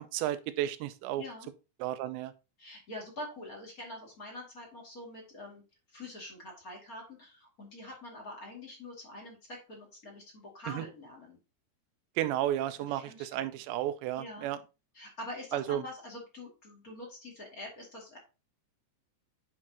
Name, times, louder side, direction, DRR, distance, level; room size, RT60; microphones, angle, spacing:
voice 1, 0.0-1.2 1.8-2.3 10.7-10.9 12.2-14.6 15.5-15.8, right 12 dB, 85° right, 2.8 m, -33 dB
voice 2, 1.2-1.5 2.6-5.6 5.9-11.4 12.8-13.5 14.2-14.5 14.9-18.2, left 1 dB, 30° left, 1.8 m, -45 dB
9.7 x 4.9 x 2.9 m
omnidirectional pair, 5.1 m